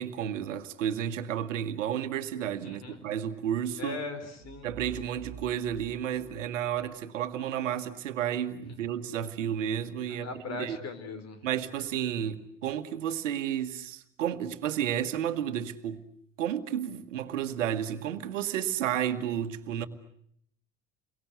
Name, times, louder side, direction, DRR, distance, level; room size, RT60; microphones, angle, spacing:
voice 1, 0.0-4.0 4.6-10.8 11.4-16.0 16.4-19.9, right 10 dB, 75° right, 10 dB, 1.5 m, -32 dB
voice 2, 2.6-3.0 3.8-4.7 10.1-11.4, left 4 dB, 45° left, 10 dB, 4.5 m, -39 dB
sound 1, 4.4-7.3, right 8 dB, 45° right, 1.2 m, -48 dB
28.5 x 23.0 x 8.1 m, 0.68 s
hypercardioid pair, 65°, 37 cm